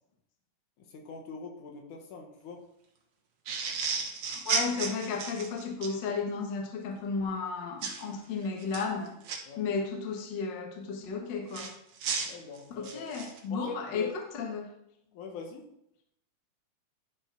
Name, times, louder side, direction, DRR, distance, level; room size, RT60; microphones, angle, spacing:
voice 1, 0.9-2.6 9.5-9.6 12.3-13.0 13.5-14.2 15.1-15.7, left 4 dB, 75° left, 2 dB, 2.6 m, -43 dB
sound 1, 3.5-5.9 7.8-8.0 8.6-9.4 11.5-13.4, right 5 dB, 60° right, 1.8 m, -33 dB
voice 2, 4.3-9.1 9.6-11.7 12.7-14.1 14.3-14.7, left 5 dB, 55° left, 2 dB, 1.3 m, -33 dB
10.5 x 4.7 x 4.6 m, 0.77 s
omnidirectional pair, 3.6 m